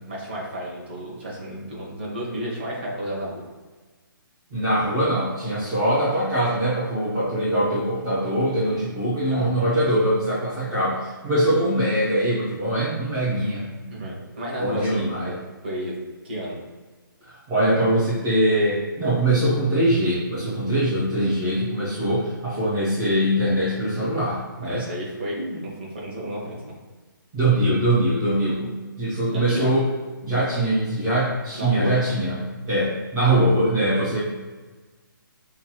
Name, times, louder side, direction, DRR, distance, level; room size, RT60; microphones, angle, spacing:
voice 1, 0.1-3.4 9.3-9.6 13.9-15.1 15.6-15.9 16.2-16.6 24.6-26.7 29.3-29.7 31.6-31.9, equal, 30° right, -4 dB, 1.0 m, -32 dB
voice 2, 4.5-13.7 14.6-15.4 17.2-24.8 27.3-29.9 30.2-34.2, right 1 dB, 10° right, -13 dB, 0.5 m, -22 dB
5.5 x 2.9 x 2.2 m, 1.3 s
hypercardioid pair, 180°, 12 cm